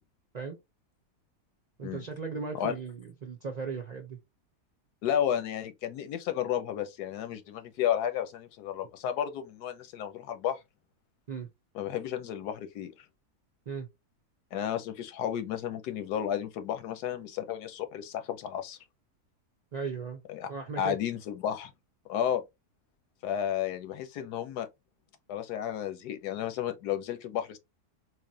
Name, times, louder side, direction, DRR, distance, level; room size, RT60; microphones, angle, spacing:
voice 1, 1.8-4.2 11.3-11.5 13.7-13.9 19.7-20.2 20.5-21.0, right 5 dB, 45° right, 0.5 m, -37 dB
voice 2, 5.0-10.6 11.7-12.9 14.5-18.8 20.3-20.5 20.8-21.7 22.1-22.4 23.2-24.7 25.3-27.6, left 10 dB, 85° left, 1.3 m, -32 dB
3.9 x 3.1 x 2.7 m
omnidirectional pair, 1.7 m